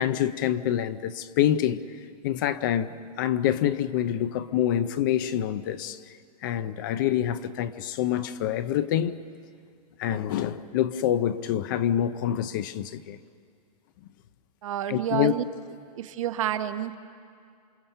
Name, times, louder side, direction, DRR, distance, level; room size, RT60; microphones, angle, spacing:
voice 1, 0.0-1.8 2.2-6.0 6.4-9.2 10.0-13.2 14.9-15.3, left 11 dB, 30° left, 0.5 m, -26 dB
voice 2, 14.6-15.4 16.0-16.9, right 11 dB, 55° right, 1.0 m, -29 dB
28.0 x 25.5 x 5.6 m
supercardioid pair, 170°, 20 cm